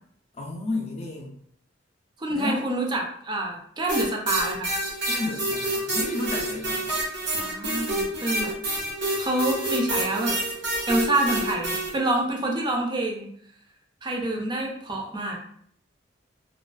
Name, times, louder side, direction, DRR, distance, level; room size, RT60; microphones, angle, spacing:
voice 1, 0.3-1.3 2.3-2.6 5.1-7.0, left 2 dB, 35° left, 1 dB, 0.4 m, -32 dB
voice 2, 2.2-4.7 7.3-8.5 9.2-10.4 10.9-13.3 14.0-15.4, right 1 dB, 25° right, 0 dB, 0.4 m, -27 dB
sound 1, 3.9-11.9, right 2 dB, 90° right, 1.1 m, -28 dB
2.4 x 2.3 x 2.3 m, 0.65 s
head